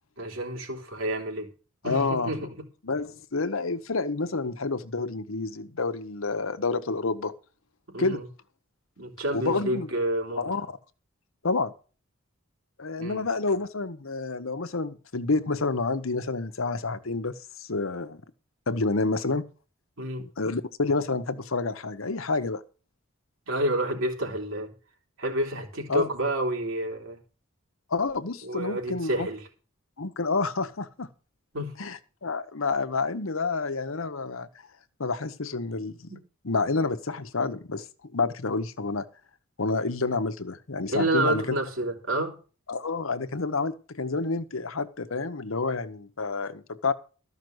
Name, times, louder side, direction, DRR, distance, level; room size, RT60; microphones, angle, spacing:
voice 1, 0.2-1.5 1.8-2.7 7.9-8.3 9.0-10.5 13.0-13.3 20.0-20.2 23.5-24.7 25.2-27.2 28.4-29.5 31.5-31.7 40.9-42.4, right 1 dB, 75° right, 3.5 m, -29 dB
voice 2, 1.8-2.3 2.8-7.3 8.0-8.2 9.3-9.9 10.4-10.8 11.4-11.7 12.8-18.2 18.7-19.4 20.2-22.6 25.9-26.1 27.9-29.3 30.0-31.1 31.8-34.5 35.0-36.1 36.4-37.8 38.1-39.1 39.6-41.6 42.7-46.9, left 3 dB, 80° left, 1.0 m, -29 dB
13.5 x 5.8 x 7.9 m
head